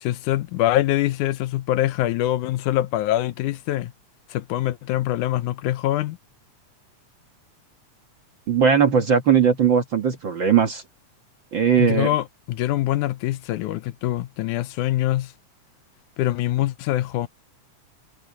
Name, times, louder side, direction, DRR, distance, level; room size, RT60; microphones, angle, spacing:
voice 1, 0.0-3.9 4.3-6.2 11.8-15.3 16.2-17.3, left 14 dB, 80° left, 2.2 m, -24 dB
voice 2, 8.5-10.8 11.5-12.1, right 7 dB, 50° right, 1.6 m, -19 dB
omnidirectional pair, 3.6 m